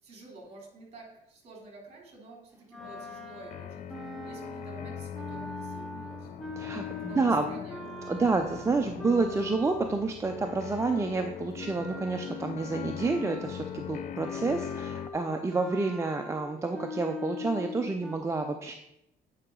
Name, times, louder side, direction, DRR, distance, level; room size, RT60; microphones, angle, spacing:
voice 1, 0.0-6.3 7.0-7.9, right 2 dB, 40° right, 0 dB, 3.1 m, -50 dB
sound 1, 2.7-12.5 12.9-18.2, left 3 dB, ahead, 1.2 m, -42 dB
sound 2, 2.8-15.1, left 10 dB, 50° left, 0.4 m, -41 dB
voice 2, 6.6-7.5 8.0-18.7, right 3 dB, 15° right, 4 dB, 0.5 m, -29 dB
Bass guitar, 8.1-11.9, left 6 dB, 75° left, 1.4 m, -53 dB
9.6 x 4.9 x 3.8 m, 0.83 s
cardioid pair, 110°, 17 cm